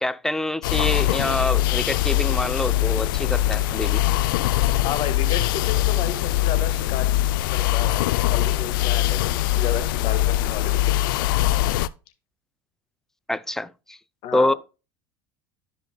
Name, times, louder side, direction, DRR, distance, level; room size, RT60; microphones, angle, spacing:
voice 1, 0.0-4.0 13.3-14.0 14.3-14.5, left 1 dB, 5° left, 0.4 m, -26 dB
sound 1, 0.6-11.9, left 13 dB, 65° left, 0.4 m, -22 dB
voice 2, 4.8-7.2 7.5-11.3 14.2-14.5, left 9 dB, 50° left, 1.6 m, -32 dB
12.5 x 5.1 x 2.2 m
hypercardioid pair, 80°, 12 cm